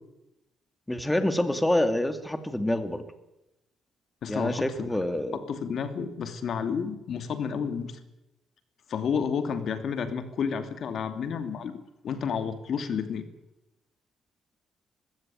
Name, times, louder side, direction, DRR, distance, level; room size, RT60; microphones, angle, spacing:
voice 1, 0.9-3.1 4.3-5.4, left 1 dB, 10° left, 9 dB, 2.4 m, -27 dB
voice 2, 4.2-4.7 5.3-8.0 8.9-13.2, left 6 dB, 60° left, 9 dB, 2.8 m, -31 dB
21.0 x 16.5 x 9.3 m, 0.92 s
cardioid pair, 90°, 0 cm